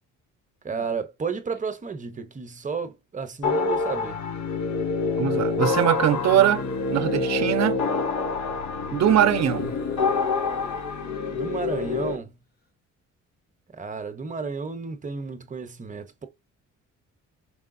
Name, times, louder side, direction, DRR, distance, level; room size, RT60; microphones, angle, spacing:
voice 1, 0.6-4.2 11.3-12.3 13.7-16.3, right 5 dB, 25° right, 0.8 m, -32 dB
sound 1, 0.7-0.9 1.5-1.6 5.3-8.6 9.3-12.3, left 4 dB, 35° left, 0.9 m, -41 dB
sound 2, 3.4-12.2, left 4 dB, 70° left, 0.7 m, -27 dB
voice 2, 5.2-6.6 6.9-7.8 8.9-9.7, right 11 dB, 65° right, 0.7 m, -21 dB
4.8 x 3.3 x 2.6 m
cardioid pair, 90°, 30 cm